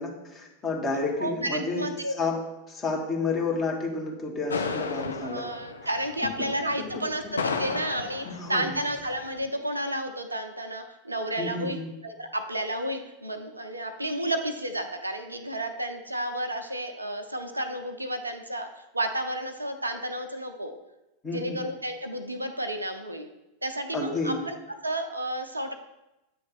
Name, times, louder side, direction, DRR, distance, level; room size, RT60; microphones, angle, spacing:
voice 1, 0.0-1.9 2.2-2.4 2.7-5.4 6.8-7.0 7.3-7.7 8.2-8.8 11.4-11.9 21.2-21.6 23.9-24.4, left 3 dB, 20° left, -1 dB, 1.4 m, -31 dB
voice 2, 1.2-2.3 5.3-11.8 12.0-20.7 21.3-23.3 23.6-24.6 24.8-25.7, right 1 dB, 80° right, 6 dB, 0.5 m, -31 dB
sound 1, 4.5-9.5, left 4 dB, 75° left, 0.4 m, -34 dB
8.4 x 3.1 x 5.9 m, 0.95 s
figure-of-eight pair, 90°, 0 cm